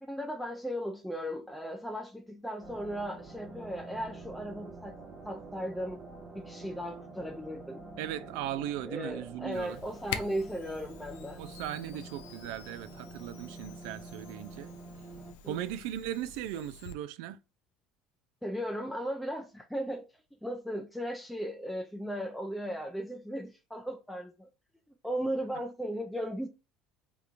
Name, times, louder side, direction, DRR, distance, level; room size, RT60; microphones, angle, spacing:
voice 1, 0.0-5.0 5.2-6.0 6.3-7.8 8.8-11.4 15.4-15.7 18.4-20.1 20.4-24.5 25.0-26.5, equal, ahead, 0.5 m, -36 dB
sound 1, 2.6-15.3, right 3 dB, 40° right, 1.3 m, -48 dB
voice 2, 8.0-9.8 11.4-14.7 15.5-17.4, right 12 dB, 75° right, 0.3 m, -38 dB
Camera, 9.5-17.0, left 8 dB, 80° left, 0.4 m, -46 dB
3.4 x 2.9 x 2.5 m
supercardioid pair, 85°, 0 cm